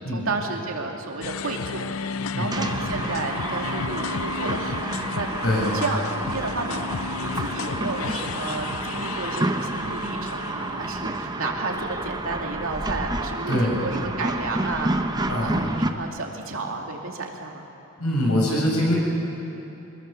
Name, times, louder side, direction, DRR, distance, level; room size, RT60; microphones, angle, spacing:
voice 1, 0.1-1.9 2.4-5.3 5.7-17.6, right 3 dB, 65° right, 1 dB, 2.6 m, -32 dB
sound 1, 1.2-11.3, left 5 dB, 65° left, 0.5 m, -33 dB
voice 2, 2.3-3.0 5.4-5.8 13.5-13.9 15.3-16.0 18.0-18.9, equal, 85° left, -3 dB, 7.7 m, -25 dB
sound 2, 2.5-15.9, right 2 dB, 20° right, 0.8 m, -29 dB
24.5 x 21.0 x 7.0 m, 2.9 s
head